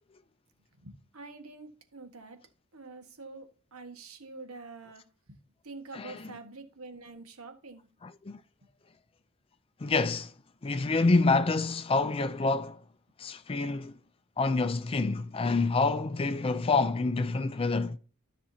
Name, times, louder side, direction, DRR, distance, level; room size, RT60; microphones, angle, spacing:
voice 1, 0.7-2.4 2.7-5.4 5.6-7.9, right 3 dB, 90° right, 1.5 m, -46 dB
voice 2, 8.0-8.4 9.8-10.3 10.6-12.8 13.2-14.0 14.4-18.0, left 3 dB, 25° left, 0.4 m, -27 dB
13.0 x 6.1 x 2.8 m
head